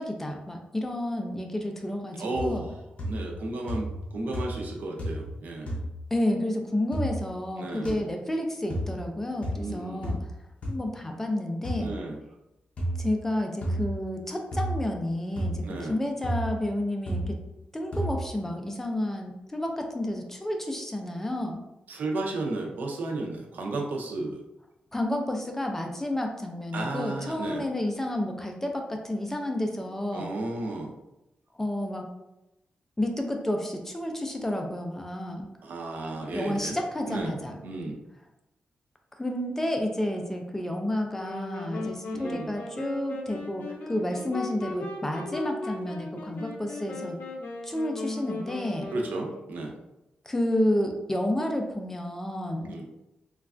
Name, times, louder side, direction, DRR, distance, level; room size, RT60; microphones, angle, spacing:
voice 1, 0.0-2.6 6.1-10.2 10.7-11.9 13.0-17.4 17.7-21.6 24.9-30.3 31.6-32.1 33.0-35.5 36.3-37.6 39.2-47.2 47.6-48.9 50.2-52.7, left 1 dB, 10° left, 3 dB, 0.3 m, -30 dB
voice 2, 2.2-2.7 3.1-5.7 7.6-8.1 9.5-10.2 11.8-12.2 15.6-15.9 21.9-24.4 26.7-27.6 30.1-30.9 35.6-36.8 37.1-37.3 37.6-38.0 42.1-42.6 48.9-49.7 52.7-52.8, right 2 dB, 70° right, 1 dB, 0.5 m, -33 dB
sound 1, 2.4-2.7 3.0-3.4 3.7-4.1 4.3-4.7 5.0-5.3 5.7-5.9 6.9-7.1 7.8-7.9 8.7-8.9 9.4-9.6 10.0-10.2 10.6-10.7 11.6-11.8 12.8-13.0 13.6-13.9 14.5-14.8 15.4-15.6 16.2-16.5 17.1-17.3 17.9-18.2, equal, 45° left, 0.7 m, -31 dB
sound 2, 41.2-49.6, left 2 dB, 80° left, 0.5 m, -37 dB
3.2 x 2.3 x 2.4 m, 0.94 s
wide cardioid pair, 135°, 3 cm